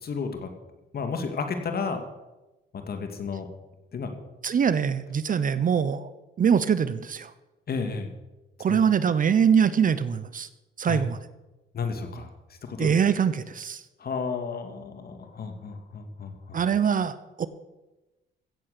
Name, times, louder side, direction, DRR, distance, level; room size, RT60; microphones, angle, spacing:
voice 1, 0.0-0.5 0.9-2.0 2.7-3.5 3.9-4.1 7.7-8.1 8.7-8.8 10.8-11.0 11.7-12.3 12.7-12.9 14.0-16.6, left 5 dB, 50° left, 6 dB, 2.3 m, -32 dB
voice 2, 4.4-6.1 6.4-7.3 8.6-10.5 10.8-11.2 12.8-13.8 16.5-17.5, right 7 dB, 45° right, 15 dB, 0.8 m, -23 dB
15.5 x 7.8 x 6.7 m, 1.1 s
cardioid pair, 90°, 20 cm